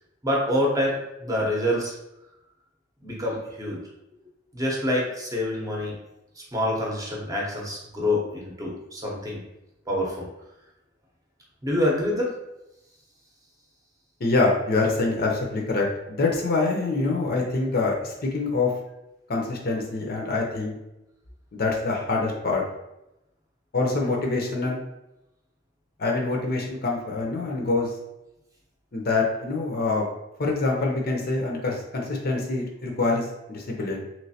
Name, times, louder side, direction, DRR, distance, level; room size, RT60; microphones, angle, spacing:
voice 1, 0.2-1.9 3.0-3.8 4.5-6.0 6.5-9.4 9.9-10.3 11.6-12.3, left 1 dB, 20° right, -3 dB, 0.8 m, -26 dB
voice 2, 14.2-18.7 19.3-20.8 21.5-22.6 23.7-24.8 26.0-27.9 28.9-30.1 30.4-34.0, left 3 dB, 55° left, -1 dB, 0.6 m, -25 dB
3.2 x 3.1 x 2.7 m, 0.90 s
head